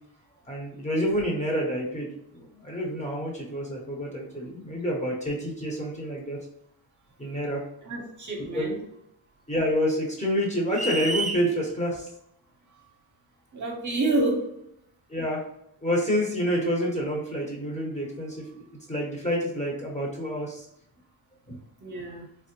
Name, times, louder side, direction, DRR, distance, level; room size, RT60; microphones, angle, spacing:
voice 1, 0.5-6.4 7.2-7.6 8.5-8.7 9.5-12.1 15.1-15.4 15.8-20.7 21.5-21.6, equal, 15° left, -2 dB, 1.0 m, -28 dB
voice 2, 7.8-8.8 13.5-14.5 21.8-22.2, right 2 dB, 40° right, -1 dB, 0.9 m, -28 dB
sound 1, 10.7-11.4, right 3 dB, 20° right, 0.4 m, -29 dB
3.4 x 2.0 x 2.9 m, 0.77 s
cardioid pair, 70°, 46 cm